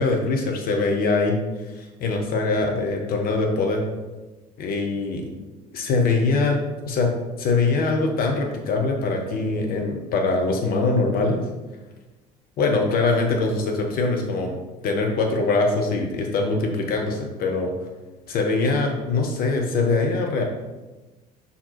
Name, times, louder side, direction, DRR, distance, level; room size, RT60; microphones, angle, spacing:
voice 1, 0.0-1.4 1.7-3.8 4.6-5.2 5.7-6.6 6.9-7.1 7.4-11.4 12.6-14.5 14.8-17.7 18.3-20.4, left 3 dB, 45° left, 2 dB, 1.1 m, -23 dB
5.8 x 4.2 x 4.1 m, 1.1 s
figure-of-eight pair, 55°, 20 cm